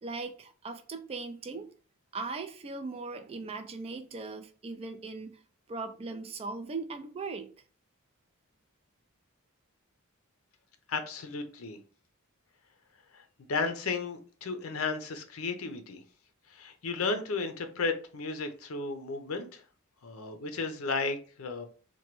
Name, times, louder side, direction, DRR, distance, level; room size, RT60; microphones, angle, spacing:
voice 1, 0.0-1.7 2.1-5.4 5.7-7.5, right 3 dB, 25° right, 0.3 m, -39 dB
voice 2, 10.9-11.8 13.1-13.2 13.5-16.0 16.5-19.6 20.0-21.6, left 4 dB, 70° left, 0.6 m, -34 dB
3.0 x 2.2 x 3.0 m
head